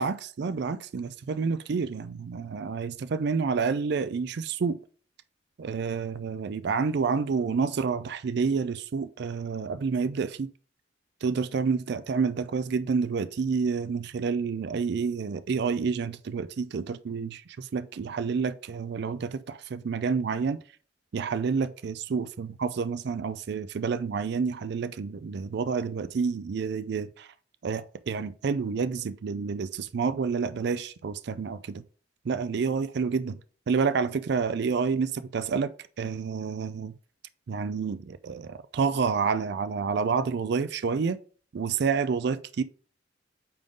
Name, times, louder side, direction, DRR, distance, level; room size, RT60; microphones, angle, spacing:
voice 1, 0.0-4.8 5.6-10.5 11.2-20.6 21.1-27.3 27.6-31.8 32.3-33.4 33.7-35.7 36.0-36.9 37.5-41.2 41.5-42.6, right 5 dB, 60° right, 0.4 m, -29 dB
8.7 x 3.7 x 3.8 m
head